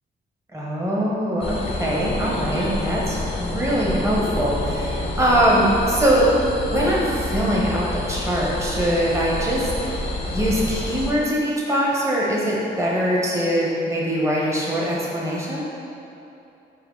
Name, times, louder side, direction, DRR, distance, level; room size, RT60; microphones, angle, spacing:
voice 1, 0.5-6.3 6.6-15.7, right 1 dB, 15° right, -5 dB, 1.0 m, -22 dB
sound 1, 1.4-11.1, left 2 dB, 30° left, 0.5 m, -28 dB
4.4 x 2.7 x 3.8 m, 2.8 s
cardioid pair, 90°, 20 cm